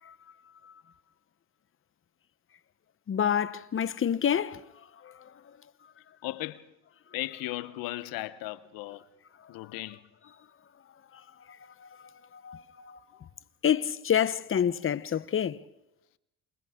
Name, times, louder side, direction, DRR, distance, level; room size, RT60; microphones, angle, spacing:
voice 1, 3.1-4.6 5.0-5.6 9.4-9.5 11.1-13.0 13.6-15.6, left 9 dB, 35° left, 0.9 m, -29 dB
voice 2, 6.2-6.7 7.1-9.0 9.5-10.0 12.8-13.3, left 17 dB, 80° left, 0.9 m, -37 dB
28.5 x 27.0 x 3.7 m
supercardioid pair, 80°, 34 cm